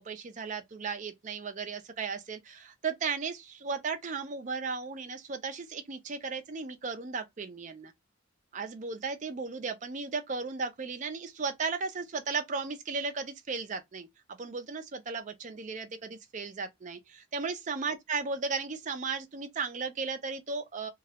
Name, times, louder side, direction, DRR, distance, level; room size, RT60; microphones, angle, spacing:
voice 1, 0.0-7.9 8.5-14.1 14.4-20.9, right 4 dB, 35° right, 0.4 m, -35 dB
2.3 x 2.0 x 2.7 m
head